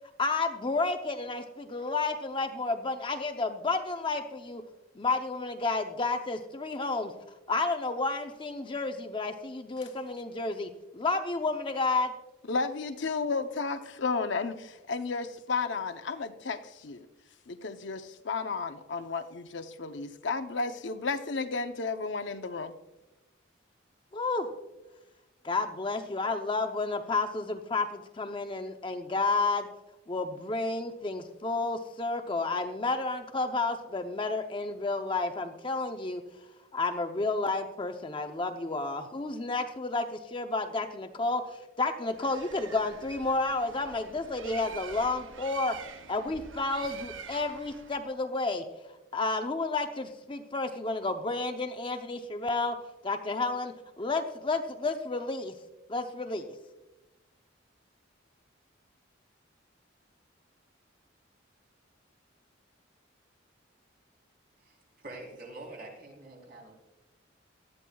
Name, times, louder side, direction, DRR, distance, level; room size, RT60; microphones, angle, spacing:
voice 1, 0.2-4.6 5.0-7.1 7.5-12.1 24.1-24.5 25.4-29.7 30.1-36.2 36.7-41.4 41.8-45.8 46.1-48.6 49.1-52.8 53.0-55.5 55.9-56.5, left 3 dB, 25° left, 5 dB, 0.6 m, -31 dB
voice 2, 12.5-17.1 17.5-22.7, left 4 dB, 65° left, 8 dB, 0.7 m, -33 dB
Bird, 42.1-48.1, right 5 dB, 75° right, 0.8 m, -46 dB
voice 3, 64.6-66.7, right 2 dB, 50° right, 0 dB, 3.5 m, -46 dB
18.0 x 13.0 x 2.3 m, 1.0 s
head